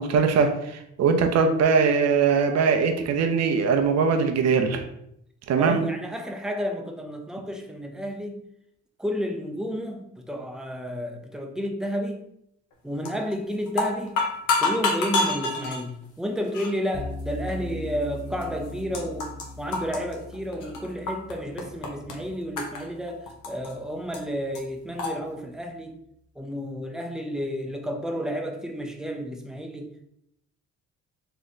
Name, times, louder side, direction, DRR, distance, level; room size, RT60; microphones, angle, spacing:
voice 1, 0.0-4.8 5.5-5.9, right 5 dB, 60° right, 5 dB, 0.6 m, -21 dB
voice 2, 5.6-8.4 9.0-12.2 12.8-14.2 14.6-26.0 26.4-30.1, equal, ahead, 3 dB, 0.6 m, -31 dB
sound 1, 13.0-13.3 13.7-15.8 16.5-16.7 17.5-17.6 18.4-18.5 18.7-19.5 19.7-21.3 21.6-22.1 22.6-23.7 24.1-24.2 24.5-24.6 25.0-25.1, left 3 dB, 80° left, 0.9 m, -27 dB
sound 2, 16.9-24.0, left 1 dB, 25° left, 1.0 m, -40 dB
3.2 x 2.9 x 4.0 m, 0.74 s
cardioid pair, 90°, 30 cm